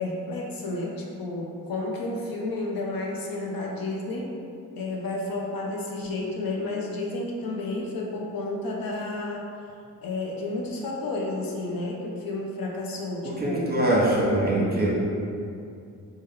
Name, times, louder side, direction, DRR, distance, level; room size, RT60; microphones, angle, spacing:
voice 1, 0.0-4.3 4.8-9.5 10.0-13.7, left 2 dB, 65° left, -2 dB, 0.6 m, -31 dB
voice 2, 13.2-14.9, right 1 dB, 25° right, -5 dB, 0.9 m, -23 dB
3.0 x 2.2 x 3.6 m, 2.5 s
supercardioid pair, 50°, 39 cm